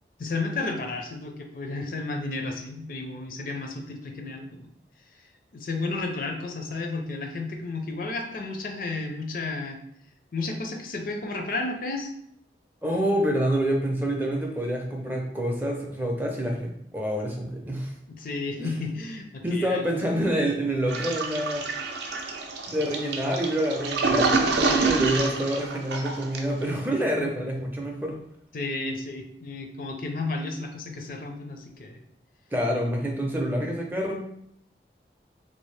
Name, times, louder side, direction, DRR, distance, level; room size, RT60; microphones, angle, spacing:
voice 1, 0.2-4.7 5.2-5.3 5.5-9.8 10.3-12.1 18.1-19.8 27.2-27.4 28.5-32.0, left 3 dB, 50° left, 4 dB, 0.4 m, -32 dB
voice 2, 12.8-17.9 18.6-18.7 19.4-21.6 22.7-28.2 32.5-34.2, equal, 10° right, 1 dB, 0.4 m, -27 dB
Toilet flush, 20.9-26.6, right 3 dB, 75° right, 0.5 m, -27 dB
3.3 x 2.7 x 3.2 m, 0.71 s
head